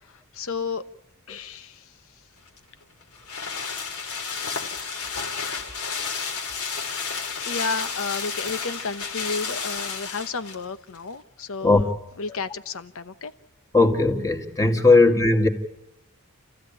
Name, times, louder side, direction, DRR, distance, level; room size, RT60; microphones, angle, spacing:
voice 1, 0.3-0.8 1.3-1.9 7.4-11.9 12.2-13.3 14.9-15.0, left 4 dB, 65° left, 12 dB, 1.0 m, -32 dB
sound 1, 2.5-10.6 11.0-11.1, left 5 dB, 80° left, 2.9 m, -31 dB
voice 2, 13.7-15.5, left 3 dB, 15° left, 3 dB, 2.2 m, -18 dB
29.5 x 15.0 x 8.8 m, 0.88 s
head